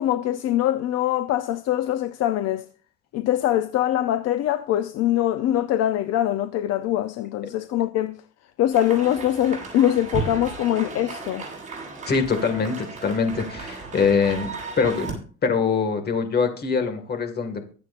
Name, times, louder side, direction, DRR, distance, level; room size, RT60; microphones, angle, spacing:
voice 1, 0.0-2.7 3.1-8.2 8.6-11.5, left 12 dB, 55° left, 0.7 m, -23 dB
sound 1, 8.7-15.1, right 4 dB, 25° right, 7.0 m, -35 dB
voice 2, 12.1-15.1 15.4-17.7, left 5 dB, 35° left, 2.0 m, -23 dB
23.0 x 7.8 x 2.5 m
cardioid pair, 145°, 30 cm